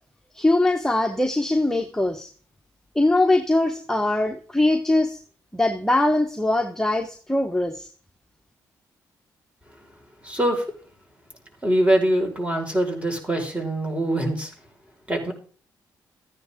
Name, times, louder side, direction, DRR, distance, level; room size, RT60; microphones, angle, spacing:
voice 1, 0.3-2.3 2.9-5.2 5.5-7.9, left 2 dB, 5° left, 3 dB, 1.5 m, -22 dB
voice 2, 10.2-10.6 11.6-14.5 15.1-15.3, right 1 dB, 15° right, 2 dB, 5.5 m, -23 dB
14.5 x 9.6 x 3.9 m, 0.42 s
hypercardioid pair, 50°, 8 cm